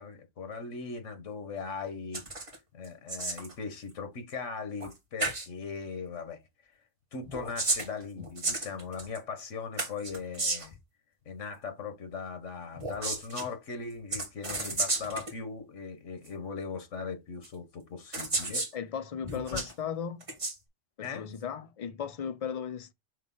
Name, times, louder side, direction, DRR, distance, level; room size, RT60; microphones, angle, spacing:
voice 1, 0.0-2.3 2.7-6.4 7.1-10.8 11.2-18.7 19.3-19.6 21.0-21.4, left 5 dB, 90° left, 1.4 m, -39 dB
sound 1, 2.1-2.6 2.8-3.5 4.8-4.9 5.2-5.5 7.2-9.2 9.8-10.8 12.8-13.5 14.1-15.3 16.3-16.4 17.4-17.5 18.1-18.7 19.2-19.7 20.2-20.6, right 2 dB, 30° right, 1.3 m, -33 dB
voice 2, 18.7-20.2 21.0-22.9, left 7 dB, 45° left, 0.5 m, -36 dB
5.5 x 3.2 x 5.5 m
omnidirectional pair, 1.2 m